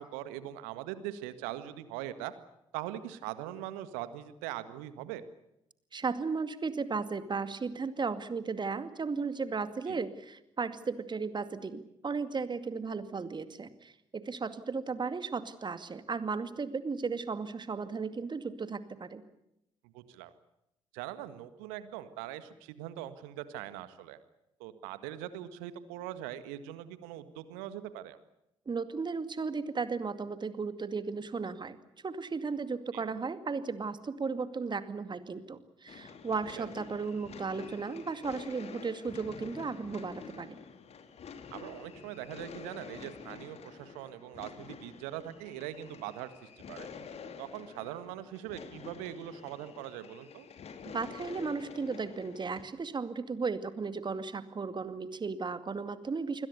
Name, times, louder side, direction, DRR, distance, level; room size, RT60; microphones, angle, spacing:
voice 1, 0.0-2.3 2.7-5.2 9.9-10.0 19.9-20.3 20.9-24.2 24.6-28.2 32.9-33.0 36.6-36.7 41.5-46.9 47.4-50.5, right 12 dB, 65° right, 13 dB, 1.7 m, -41 dB
voice 2, 5.9-19.2 28.7-31.8 32.0-40.6 50.9-56.5, right 4 dB, 30° right, 11 dB, 2.3 m, -35 dB
sound 1, 35.9-52.6, left 6 dB, 45° left, 2.6 m, -48 dB
28.5 x 22.0 x 6.8 m, 0.83 s
figure-of-eight pair, 45°, 15 cm